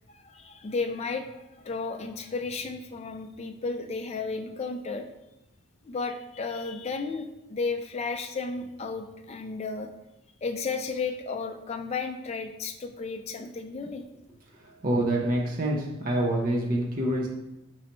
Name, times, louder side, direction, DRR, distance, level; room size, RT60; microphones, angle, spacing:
voice 1, 0.1-5.1 5.8-9.9 10.4-14.0, left 4 dB, 30° left, 5 dB, 0.3 m, -33 dB
voice 2, 14.6-17.3, right 1 dB, 40° right, -1 dB, 0.6 m, -26 dB
3.9 x 3.1 x 4.3 m, 0.91 s
head